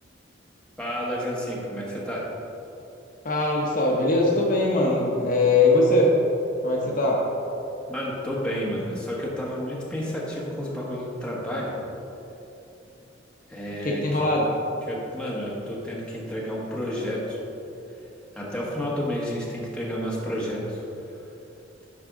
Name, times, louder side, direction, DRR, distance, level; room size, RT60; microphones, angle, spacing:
voice 1, 0.8-2.3 7.9-11.7 13.5-14.2 14.9-17.4 18.3-20.8, equal, 5° left, -5 dB, 1.4 m, -30 dB
voice 2, 3.2-6.1 6.6-7.2 13.8-14.5, left 2 dB, 45° left, -2 dB, 0.9 m, -21 dB
11.0 x 4.7 x 3.7 m, 2.9 s
head